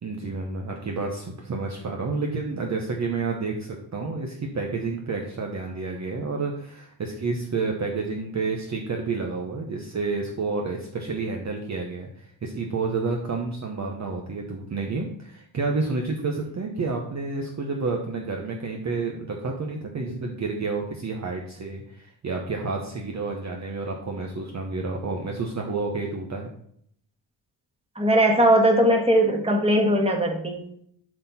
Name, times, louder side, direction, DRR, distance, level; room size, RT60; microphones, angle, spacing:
voice 1, 0.0-26.5, right 3 dB, 35° right, 1 dB, 1.0 m, -30 dB
voice 2, 27.9-30.6, equal, 10° right, 2 dB, 1.6 m, -19 dB
12.0 x 4.3 x 4.2 m, 0.68 s
cardioid pair, 135°, 47 cm